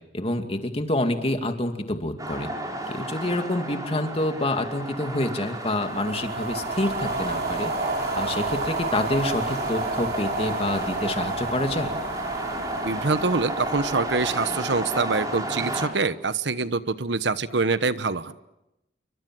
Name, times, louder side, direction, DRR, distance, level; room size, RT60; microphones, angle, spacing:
voice 1, 0.1-2.5 2.9-7.7 8.1-11.9, left 1 dB, 35° left, 6 dB, 2.5 m, -27 dB
sound 1, 2.2-15.9, right 1 dB, 20° right, 5.2 m, -32 dB
sound 2, 5.8-15.3, right 3 dB, 60° right, 3.4 m, -32 dB
voice 2, 12.8-18.3, right 4 dB, 80° right, 13 dB, 1.1 m, -25 dB
29.0 x 24.5 x 7.7 m, 0.89 s
head